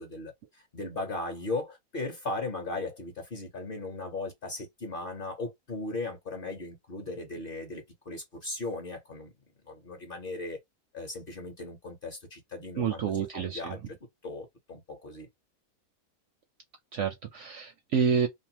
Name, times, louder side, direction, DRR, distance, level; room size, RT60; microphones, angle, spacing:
voice 1, 0.0-9.3 9.7-10.6 10.9-13.8 14.2-15.3, left 2 dB, 45° left, 0.8 m, -37 dB
voice 2, 12.8-13.8 16.9-18.3, right 7 dB, 65° right, 0.7 m, -28 dB
2.7 x 2.1 x 2.8 m
omnidirectional pair, 1.6 m